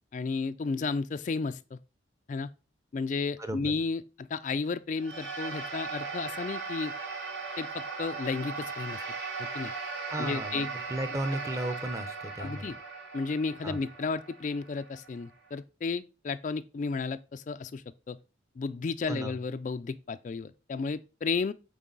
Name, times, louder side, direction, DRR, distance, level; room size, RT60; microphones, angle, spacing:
voice 1, 0.1-1.8 2.3-2.5 2.9-6.9 7.6-9.0 9.4-9.7 10.2-10.7 12.4-12.8 13.1-18.2 18.6-21.5, left 4 dB, 40° left, 0.3 m, -33 dB
voice 2, 3.4-3.7 10.1-12.7 13.6-13.8 19.1-19.4, right 1 dB, 15° right, 0.7 m, -35 dB
sound 1, 5.0-15.5, right 4 dB, 70° right, 1.6 m, -38 dB
8.3 x 3.9 x 3.9 m
head